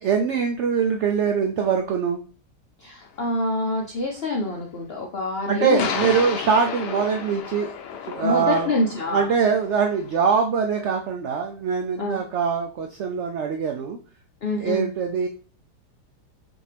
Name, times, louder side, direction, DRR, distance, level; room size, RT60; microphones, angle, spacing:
voice 1, 0.0-2.2 5.5-7.7 8.0-8.7 9.1-14.0 14.6-15.3, right 6 dB, 90° right, 3 dB, 0.6 m, -23 dB
voice 2, 2.8-5.9 6.2-6.3 8.2-9.3 12.0-12.2 14.4-14.9, left 2 dB, 65° left, 0 dB, 0.6 m, -26 dB
sound 1, 3.1-3.2 5.8-10.1, left 7 dB, 85° left, 1.3 m, -33 dB
6.0 x 2.7 x 3.3 m, 0.39 s
omnidirectional pair, 1.8 m